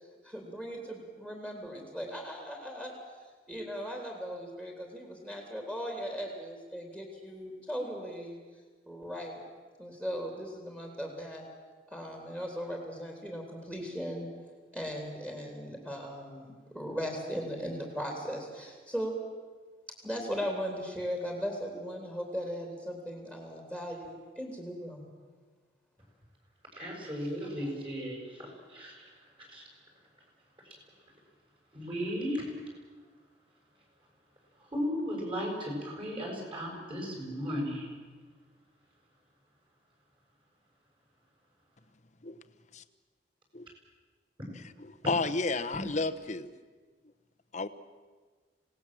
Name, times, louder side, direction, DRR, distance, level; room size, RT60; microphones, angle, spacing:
voice 1, 0.2-2.9 3.5-8.4 8.9-9.4 9.8-11.4 11.9-14.3 14.7-19.1 20.0-25.1, equal, 10° right, 1 dB, 3.4 m, -38 dB
voice 2, 26.8-29.1 29.4-29.6 30.6-30.8 31.7-32.5 34.7-37.9, equal, 30° right, 0 dB, 7.1 m, -35 dB
voice 3, 44.9-46.5 47.5-47.7, left 3 dB, 40° left, 9 dB, 1.0 m, -31 dB
26.5 x 18.5 x 7.7 m, 1.4 s
head